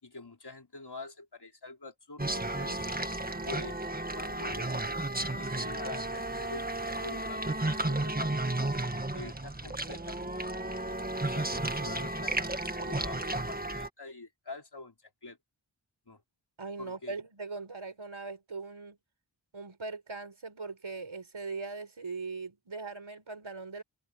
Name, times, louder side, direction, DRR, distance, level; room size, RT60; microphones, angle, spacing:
voice 1, 0.0-2.8 3.4-3.8 4.1-8.4 9.1-10.8 11.2-15.4 16.1-16.2 16.8-17.2, left 3 dB, 60° left, 3.8 m, -46 dB
sound 1, 2.2-13.9, right 2 dB, 20° right, 1.6 m, -33 dB
voice 2, 16.6-19.0 19.5-23.8, right 4 dB, 90° right, 4.8 m, -40 dB
wide cardioid pair, 45°, 45 cm